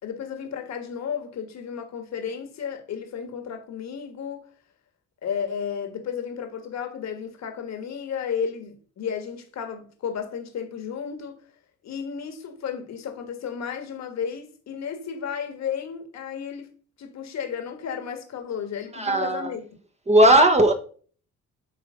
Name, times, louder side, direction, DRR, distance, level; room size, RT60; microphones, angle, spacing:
voice 1, 0.0-4.5 5.2-11.4 11.8-16.7 17.0-19.7, left 7 dB, 65° left, 1.6 m, -33 dB
voice 2, 18.9-19.5 20.1-20.7, right 1 dB, 20° right, 1.1 m, -17 dB
8.1 x 3.4 x 6.3 m
cardioid pair, 90°, 30 cm